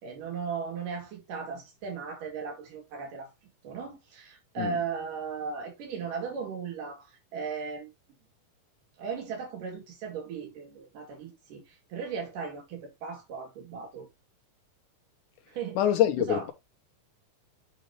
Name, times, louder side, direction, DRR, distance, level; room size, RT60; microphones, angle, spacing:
voice 1, 0.0-3.3 3.6-7.1 7.3-7.9 9.0-14.1 15.5-15.8 16.3-16.5, right 5 dB, 85° right, 3.8 m, -37 dB
voice 2, 15.8-16.5, left 11 dB, 75° left, 2.4 m, -25 dB
9.1 x 4.3 x 2.9 m
omnidirectional pair, 3.7 m